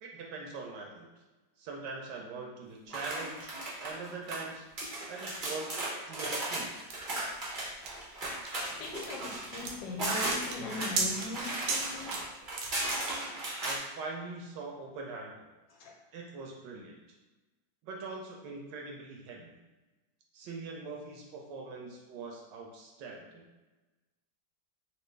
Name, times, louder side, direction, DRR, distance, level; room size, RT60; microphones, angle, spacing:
voice 1, 0.0-1.1 1.6-3.5 3.8-4.6 5.1-5.7 6.1-6.7 13.6-15.5 16.1-16.9 17.8-19.6 20.3-23.5, right 3 dB, 75° right, 0 dB, 1.2 m, -42 dB
sound 1, 2.9-4.4 4.8-13.8, right 2 dB, 55° right, 0.5 m, -36 dB
sound 2, 6.9-13.2, right 3 dB, 90° right, 1.4 m, -37 dB
voice 2, 8.6-12.3 15.7-15.9, left 3 dB, 75° left, 1 dB, 1.1 m, -40 dB
3.3 x 2.8 x 3.1 m, 1.1 s
omnidirectional pair, 2.1 m